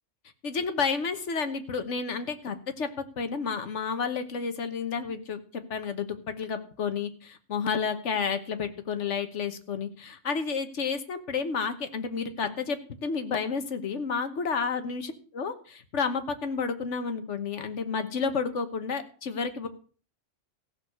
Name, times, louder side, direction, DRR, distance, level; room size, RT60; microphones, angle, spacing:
voice 1, 0.4-19.7, left 5 dB, 75° left, 9 dB, 1.5 m, -31 dB
15.0 x 6.4 x 6.7 m, 0.41 s
omnidirectional pair, 1.3 m